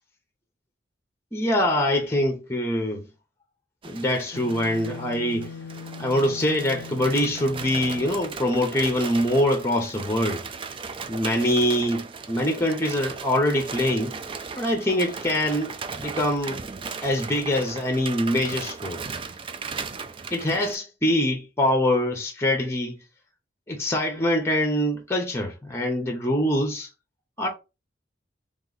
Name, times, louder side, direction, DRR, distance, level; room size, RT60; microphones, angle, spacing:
voice 1, 1.3-3.1 3.8-5.5 6.0-10.5 11.1-14.2 14.6-16.6 17.0-19.0 20.3-22.9 23.7-26.9 27.4-27.5, left 1 dB, 15° left, 0.8 m, -24 dB
sound 1, 3.8-20.7, right 5 dB, 25° right, 0.3 m, -37 dB
sound 2, 4.3-8.2, left 5 dB, 80° left, 0.4 m, -40 dB
3.5 x 3.1 x 3.9 m
head